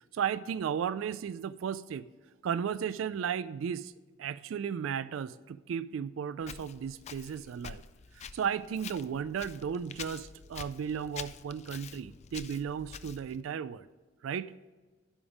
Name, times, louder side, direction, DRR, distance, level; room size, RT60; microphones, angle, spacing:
voice 1, 0.1-2.1 2.4-3.9 4.2-7.8 8.1-13.9 14.2-14.5, right 7 dB, 75° right, 16 dB, 0.3 m, -35 dB
Walk footsteps, 6.4-13.4, left 7 dB, 35° left, 0.4 m, -47 dB
11.0 x 5.2 x 4.9 m, 1.3 s
head